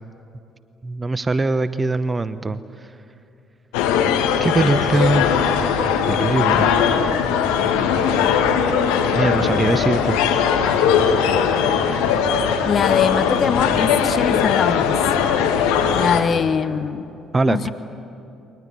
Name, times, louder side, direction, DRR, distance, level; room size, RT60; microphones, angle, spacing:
voice 1, 0.8-2.6 4.4-5.3 6.0-6.8 9.1-10.5 14.3-14.4 17.3-17.7, right 3 dB, 25° right, 13 dB, 0.9 m, -21 dB
sound 1, 3.7-16.2, left 7 dB, 75° left, 1.8 m, -19 dB
voice 2, 12.6-15.0 15.9-17.2 17.5-17.7, left 6 dB, 45° left, 11 dB, 1.1 m, -22 dB
29.5 x 23.0 x 8.4 m, 2.6 s
hypercardioid pair, 50°, 0 cm